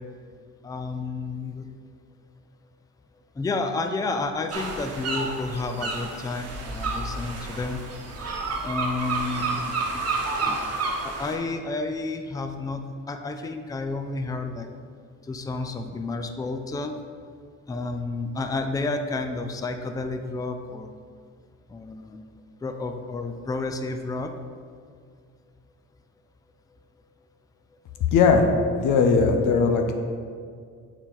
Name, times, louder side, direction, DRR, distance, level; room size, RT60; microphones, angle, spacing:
voice 1, 0.6-1.7 3.4-7.8 8.6-10.0 10.4-10.6 11.0-14.7 15.2-17.0 17.7-20.9 21.7-22.2 22.6-24.3, left 3 dB, 10° left, 7 dB, 0.4 m, -31 dB
sound 1, 4.5-11.4, right 3 dB, 55° right, 1.0 m, -30 dB
voice 2, 28.1-28.5 28.8-30.0, left 5 dB, 85° left, 5 dB, 0.7 m, -19 dB
6.9 x 4.3 x 3.8 m, 2.1 s
cardioid pair, 90°, 30 cm